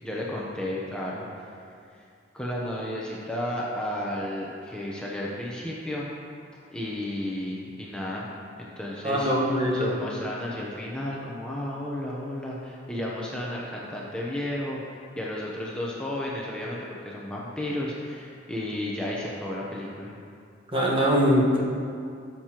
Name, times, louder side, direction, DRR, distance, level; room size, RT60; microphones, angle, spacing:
voice 1, 0.0-1.5 2.3-6.1 6.7-8.3 8.6-20.1, left 1 dB, 5° left, -5 dB, 0.8 m, -33 dB
voice 2, 9.0-9.9 20.7-21.6, equal, 30° right, -4 dB, 1.3 m, -22 dB
13.0 x 7.5 x 2.9 m, 2.4 s
head